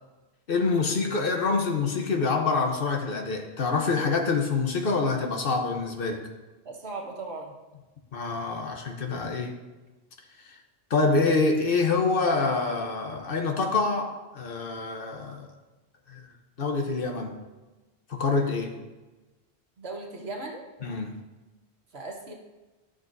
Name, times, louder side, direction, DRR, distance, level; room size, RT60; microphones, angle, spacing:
voice 1, 0.5-6.2 8.1-9.6 10.9-15.5 16.1-16.2 16.6-17.4 18.1-18.7 20.8-21.1, left 4 dB, 60° left, 3 dB, 1.1 m, -26 dB
voice 2, 6.6-7.6 19.8-20.7 21.9-22.3, right 3 dB, 70° right, -1 dB, 1.6 m, -37 dB
13.0 x 6.5 x 2.7 m, 1.2 s
omnidirectional pair, 1.1 m